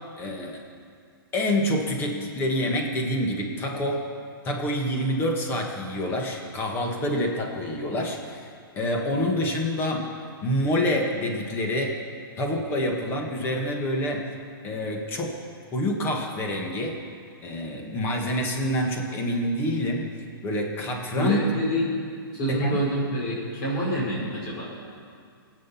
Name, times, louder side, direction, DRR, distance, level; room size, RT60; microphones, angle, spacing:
voice 1, 0.2-0.6 1.3-4.0 4.4-10.1 10.4-12.0 12.4-14.3 14.6-15.4 15.7-17.0 17.4-20.1 20.4-21.4 22.5-22.8, left 1 dB, 15° left, 1 dB, 1.7 m, -27 dB
voice 2, 21.1-21.9 22.3-24.7, equal, 35° left, -5 dB, 5.2 m, -27 dB
23.5 x 9.0 x 5.7 m, 2.2 s
hypercardioid pair, 165°, 12 cm